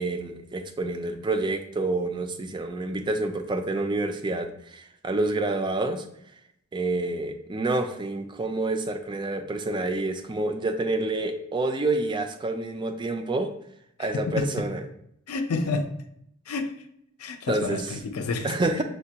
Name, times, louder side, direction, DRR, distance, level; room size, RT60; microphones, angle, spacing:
voice 1, 0.0-6.1 6.7-13.5 14.0-14.8 17.5-17.9 18.4-18.8, right 2 dB, 20° right, 7 dB, 0.3 m, -28 dB
voice 2, 14.0-14.5 15.3-15.9 16.5-16.7 17.2-18.5, left 3 dB, 75° left, 6 dB, 0.5 m, -29 dB
6.4 x 2.2 x 2.7 m, 0.72 s
head